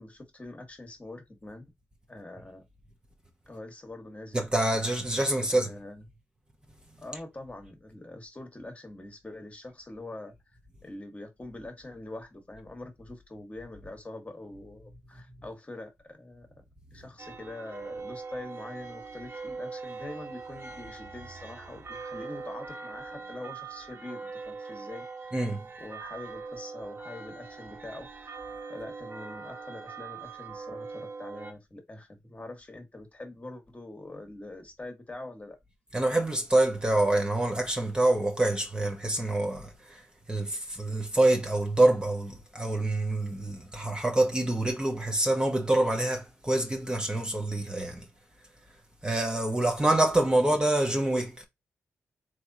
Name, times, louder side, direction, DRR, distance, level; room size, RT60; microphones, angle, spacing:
voice 1, 0.0-1.7 2.1-2.6 3.5-4.5 5.5-6.0 7.0-16.5 16.9-25.3 25.8-28.4 28.7-35.6 50.3-50.5, left 2 dB, 25° left, 1.4 m, -44 dB
voice 2, 4.3-5.7 25.3-25.6 35.9-40.0 40.3-48.0 49.0-51.5, right 1 dB, 15° right, 1.0 m, -26 dB
sound 1, 17.2-31.5, right 4 dB, 50° right, 0.7 m, -42 dB
3.4 x 3.0 x 2.7 m
cardioid pair, 60°, 5 cm